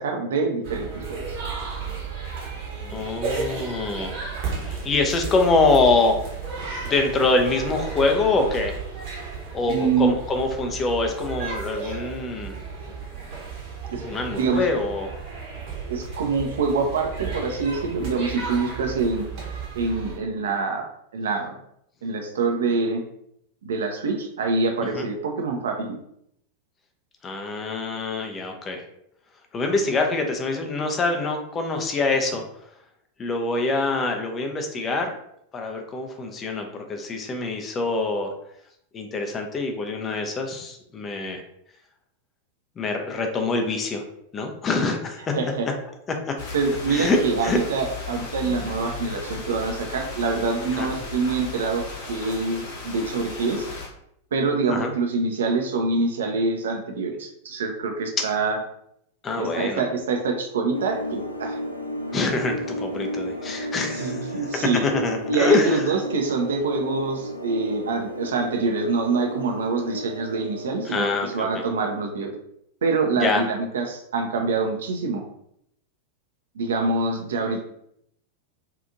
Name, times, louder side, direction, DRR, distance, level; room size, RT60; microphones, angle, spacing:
voice 1, 0.0-1.4 9.7-10.1 13.9-14.0 14.3-14.7 15.9-19.3 19.7-20.8 21.1-21.6 22.0-23.0 23.6-26.0 45.3-45.7 46.5-51.8 52.1-53.7 54.3-58.6 59.4-61.6 63.9-64.8 65.3-72.3 72.8-75.2 76.6-77.6, right 4 dB, 65° right, 3 dB, 0.5 m, -25 dB
sound 1, 0.6-20.2, right 5 dB, 45° right, 0.9 m, -34 dB
voice 2, 2.9-4.2 4.6-6.2 6.8-8.8 9.5-12.5 14.0-15.1 25.0-25.1 27.2-28.8 29.5-32.4 33.2-35.1 35.5-38.3 38.9-41.4 42.8-44.0 44.3-45.4 46.1-46.2 46.9-47.6 50.7-50.9 54.7-54.9 58.2-58.3 59.2-59.8 62.1-64.3 64.8-65.8 70.9-71.5 73.2-73.4, left 3 dB, 25° left, 4 dB, 0.4 m, -25 dB
sound 2, 46.4-53.9, left 4 dB, 50° left, 0.9 m, -36 dB
sound 3, 60.7-72.0, equal, 85° left, 0.3 m, -33 dB
2.7 x 2.4 x 2.5 m, 0.74 s
figure-of-eight pair, 90°, 0 cm